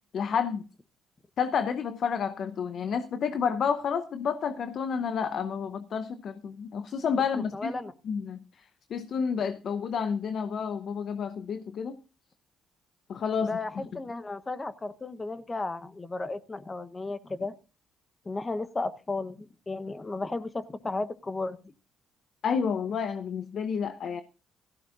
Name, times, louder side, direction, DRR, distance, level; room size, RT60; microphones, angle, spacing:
voice 1, 0.1-0.6 1.4-7.7 8.1-8.4 8.9-11.9 13.1-13.9 22.4-24.2, left 6 dB, 60° left, 0.7 m, -30 dB
voice 2, 7.5-7.9 13.4-17.5 18.2-21.7, left 3 dB, 25° left, 1.0 m, -34 dB
16.5 x 14.0 x 2.5 m
supercardioid pair, 60°, 0 cm